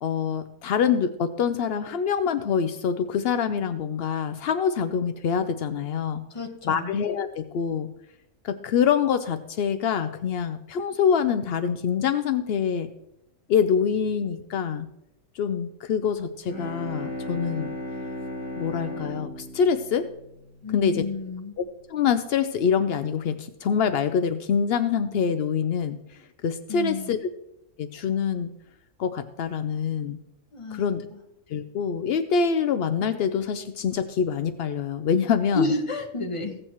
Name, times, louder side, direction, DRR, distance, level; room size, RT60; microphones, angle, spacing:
voice 1, 0.0-6.2 6.6-7.9 8.4-12.9 13.5-14.9 15.3-17.7 18.5-20.1 20.7-21.0 21.6-21.7 21.9-27.2 27.8-28.5 29.0-30.2 30.7-31.0 31.5-35.7, left 7 dB, 80° left, 10 dB, 0.5 m, -25 dB
voice 2, 6.3-7.0 20.6-21.6 26.7-27.2 30.5-31.2 35.5-36.6, left 3 dB, 25° left, 3 dB, 0.9 m, -30 dB
Bowed string instrument, 16.3-21.0, left 1 dB, 5° right, 2.1 m, -36 dB
15.5 x 7.7 x 3.0 m, 0.84 s
omnidirectional pair, 1.6 m